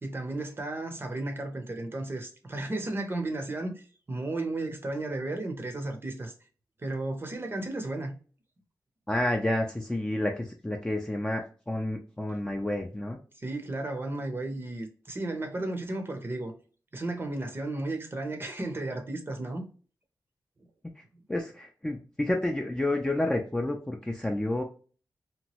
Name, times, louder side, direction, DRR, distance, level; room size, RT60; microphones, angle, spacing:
voice 1, 0.0-6.3 6.8-8.1 13.4-16.5 16.9-19.7, right 2 dB, 30° right, 0.6 m, -34 dB
voice 2, 9.1-13.2 21.3-24.6, left 1 dB, 10° left, 0.4 m, -30 dB
2.9 x 2.2 x 2.9 m
wide cardioid pair, 90°, 7 cm